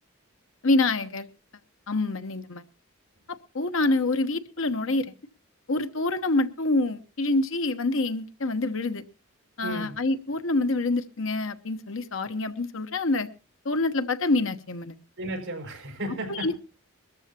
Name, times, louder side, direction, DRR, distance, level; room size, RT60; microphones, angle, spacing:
voice 1, 0.6-1.3 1.9-2.6 3.3-5.1 5.7-9.0 9.6-13.3 13.6-15.0 16.3-16.6, left 2 dB, 65° left, 1.1 m, -26 dB
voice 2, 9.6-10.0 15.2-16.6, right 1 dB, 65° right, 5.5 m, -34 dB
21.5 x 13.5 x 2.9 m
head